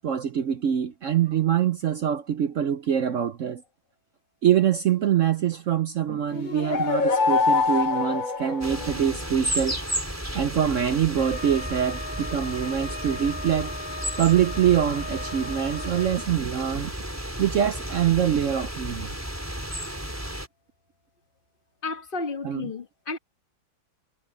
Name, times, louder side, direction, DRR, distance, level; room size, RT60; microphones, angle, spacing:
voice 1, 0.0-3.6 4.4-9.8 10.3-13.7 14.2-16.9 17.4-19.1 22.4-22.7, right 9 dB, 75° right, 0.7 m, -24 dB
sound 1, 6.3-9.2, left 4 dB, 80° left, 0.4 m, -24 dB
sound 2, 8.6-20.5, equal, 5° right, 4.2 m, -33 dB
Wind instrument woodwind instrument, 11.1-16.3, left 3 dB, 55° right, 3.0 m, -39 dB
voice 2, 21.8-23.2, left 3 dB, 30° left, 1.6 m, -32 dB
omnidirectional pair, 2.2 m